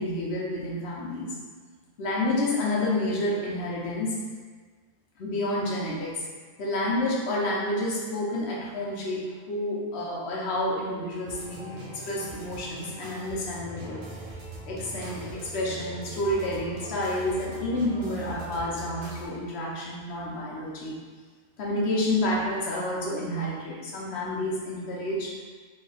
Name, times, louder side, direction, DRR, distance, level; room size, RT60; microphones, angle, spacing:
voice 1, 0.0-1.4 2.0-4.2 5.2-6.1 6.6-14.0 14.7-21.0 21.6-25.3, left 1 dB, 55° left, -4 dB, 0.9 m, -29 dB
sound 1, 11.3-19.3, right 1 dB, 55° right, 0.6 m, -41 dB
3.2 x 2.2 x 3.8 m, 1.5 s
omnidirectional pair, 1.6 m